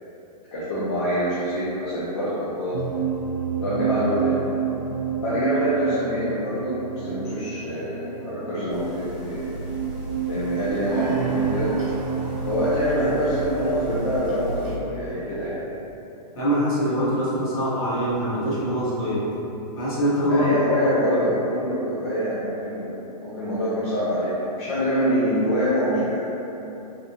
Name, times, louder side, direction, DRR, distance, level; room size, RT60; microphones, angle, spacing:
voice 1, 0.5-2.8 3.6-4.4 5.2-9.6 10.3-11.7 12.4-15.6 20.2-26.3, equal, 40° left, -10 dB, 0.5 m, -25 dB
sound 1, 2.7-15.5, right 7 dB, 90° right, 0.5 m, -30 dB
sound 2, 8.7-14.7, right 1 dB, 25° right, 1.3 m, -36 dB
voice 2, 16.3-19.3 19.7-20.6 21.1-21.2, equal, 55° left, -10 dB, 1.3 m, -23 dB
3.6 x 2.3 x 2.8 m, 3.0 s
hypercardioid pair, 170°, 21 cm